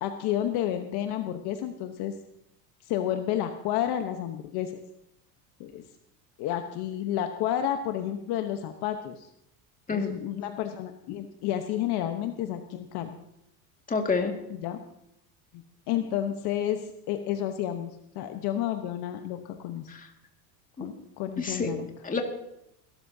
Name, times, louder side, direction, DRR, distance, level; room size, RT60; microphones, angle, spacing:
voice 1, 0.0-2.1 2.8-4.7 5.6-5.8 6.4-9.3 9.9-13.2 14.5-14.8 15.5-20.0 20.8-21.9, left 11 dB, 55° left, 6 dB, 1.1 m, -31 dB
voice 2, 9.9-10.2 13.9-14.3 19.9-20.1 20.8-20.9 21.4-21.7 22.0-22.2, left 4 dB, 15° left, 3 dB, 2.1 m, -28 dB
23.0 x 13.0 x 2.8 m, 0.80 s
supercardioid pair, 120°, 46 cm